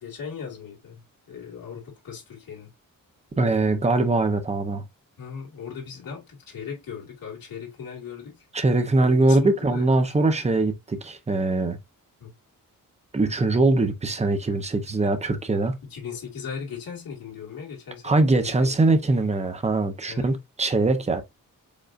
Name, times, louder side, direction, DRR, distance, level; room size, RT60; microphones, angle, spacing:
voice 1, 0.0-1.0 1.3-2.7 5.2-8.4 9.0-10.1 12.2-12.3 15.9-18.7 20.1-20.4, left 6 dB, 80° left, 2.2 m, -38 dB
voice 2, 3.4-4.8 8.5-11.8 13.1-15.8 18.0-21.2, right 2 dB, 20° right, 0.7 m, -22 dB
5.1 x 3.8 x 2.4 m
wide cardioid pair, 165°, 34 cm